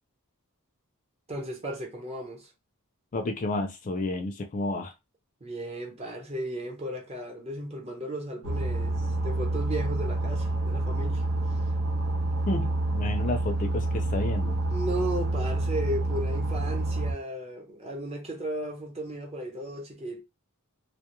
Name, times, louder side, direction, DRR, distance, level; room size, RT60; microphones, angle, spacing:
voice 1, 1.3-2.5 5.4-11.3 14.7-20.2, right 1 dB, 30° right, 0.9 m, -35 dB
voice 2, 3.1-4.9 12.5-14.6, left 2 dB, 35° left, 0.4 m, -31 dB
sound 1, 8.4-17.1, right 2 dB, 70° right, 0.8 m, -28 dB
2.2 x 2.1 x 2.9 m
head